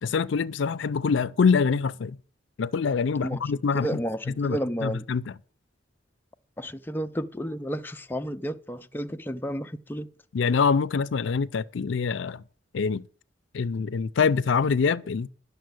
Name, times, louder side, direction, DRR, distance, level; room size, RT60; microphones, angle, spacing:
voice 1, 0.0-2.2 2.6-3.9 4.3-5.3 10.3-12.4 12.7-13.0 13.5-15.3, left 5 dB, 70° left, 0.4 m, -25 dB
voice 2, 3.7-5.0 6.6-10.1, equal, 10° left, 0.4 m, -32 dB
10.5 x 6.8 x 7.8 m
head